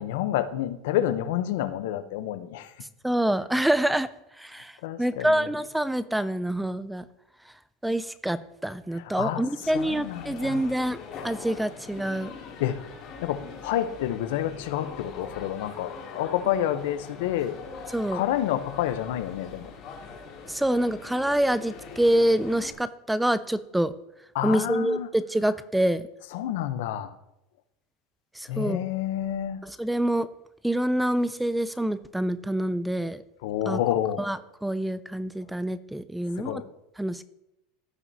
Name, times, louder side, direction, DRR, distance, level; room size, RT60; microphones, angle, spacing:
voice 1, 0.0-2.7 4.8-5.5 8.9-9.4 9.7-10.8 12.6-12.8 13.2-17.6 18.1-19.7 24.3-25.1 26.3-27.1 28.5-29.6 33.4-34.2 36.4-36.7, left 11 dB, 75° left, 12 dB, 0.7 m, -29 dB
voice 2, 3.0-4.1 4.4-4.7 5.0-7.0 7.8-11.0 11.2-12.3 17.9-18.2 20.5-23.9 24.4-26.0 28.4-28.8 29.7-30.3 30.6-33.2 33.7-33.8 34.2-36.6 37.0-37.2, right 1 dB, 5° right, 15 dB, 0.3 m, -26 dB
sound 1, 9.6-22.7, left 5 dB, 45° left, 2.6 m, -42 dB
15.0 x 5.8 x 2.7 m, 0.88 s
supercardioid pair, 145°, 0 cm